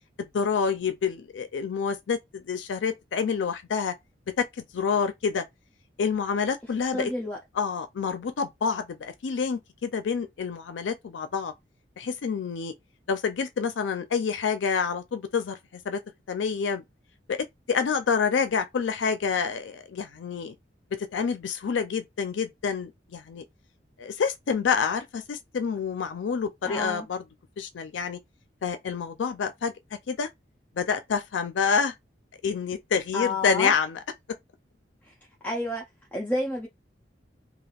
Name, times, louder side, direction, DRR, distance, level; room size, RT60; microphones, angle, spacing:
voice 1, 0.2-3.9 4.4-5.4 6.0-7.1 7.6-11.5 12.0-12.7 13.1-16.0 16.3-16.8 17.3-17.4 17.7-20.6 20.9-23.4 24.0-27.2 27.6-28.2 28.6-29.7 30.1-30.3 30.8-31.9 32.4-34.0, left 6 dB, 90° left, 0.4 m, -28 dB
voice 2, 6.9-7.4 26.6-27.1 33.1-33.7 35.0-35.1 35.4-35.8 36.1-36.7, left 1 dB, 10° left, 0.5 m, -30 dB
3.4 x 2.4 x 2.3 m
head